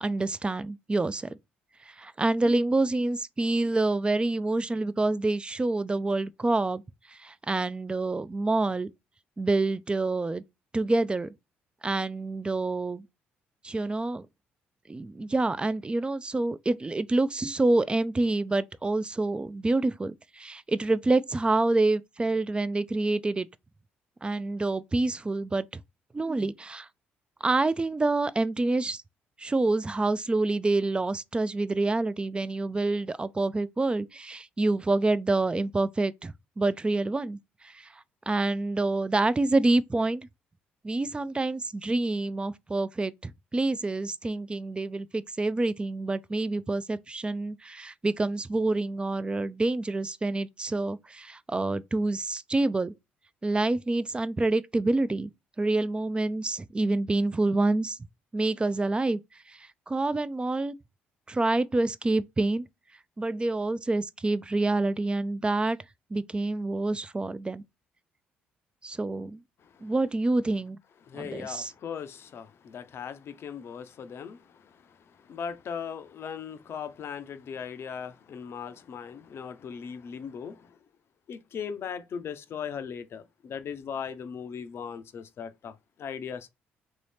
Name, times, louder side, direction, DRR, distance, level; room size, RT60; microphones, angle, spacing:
voice 1, 0.0-1.3 1.9-6.8 7.1-8.9 9.4-10.4 10.7-11.3 11.8-13.1 13.6-14.3 14.9-23.5 24.2-25.7 26.1-26.9 27.4-29.0 29.4-37.4 37.6-40.3 40.8-52.9 53.4-55.3 55.6-58.0 58.3-59.2 59.5-60.7 61.3-62.7 63.2-65.8 66.1-67.6 68.8-69.4 69.8-70.8 71.2-71.7, right 2 dB, 20° right, 0.3 m, -27 dB
voice 2, 71.1-75.0 75.2-80.8 81.3-86.5, left 7 dB, 55° left, 0.5 m, -38 dB
3.0 x 2.7 x 3.3 m
hypercardioid pair, 50°, 5 cm